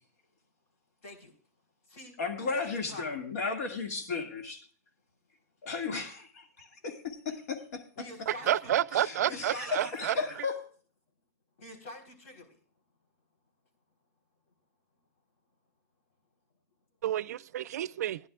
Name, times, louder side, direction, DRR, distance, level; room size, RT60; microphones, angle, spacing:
voice 1, 1.0-1.3 1.9-2.2 2.5-3.2 8.0-8.7 9.2-10.4 11.6-12.6, left 1 dB, 60° left, 4.0 m, -47 dB
voice 2, 2.2-4.7 5.6-6.3 6.8-7.8 8.9-10.6, left 4 dB, 75° left, 2.2 m, -34 dB
voice 3, 8.3-10.2 17.0-18.2, right 11 dB, 85° right, 0.4 m, -29 dB
16.5 x 10.5 x 2.4 m
supercardioid pair, 160°, 8 cm